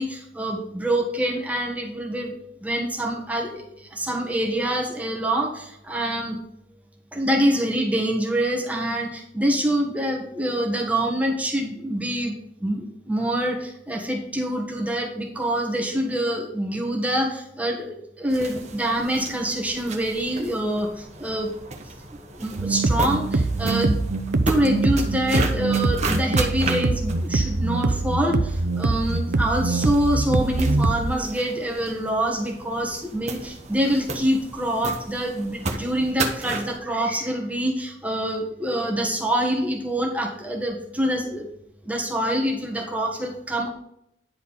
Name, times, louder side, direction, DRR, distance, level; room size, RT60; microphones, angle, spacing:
voice 1, 0.0-2.3 2.6-6.4 7.1-21.5 22.2-24.0 24.5-41.5 41.8-43.7, right 1 dB, 10° right, 0 dB, 1.4 m, -25 dB
sound 1, 18.3-36.8, right 3 dB, 40° right, 1.1 m, -34 dB
sound 2, 22.6-31.1, right 3 dB, 75° right, 0.6 m, -23 dB
10.0 x 4.4 x 5.5 m, 0.77 s
head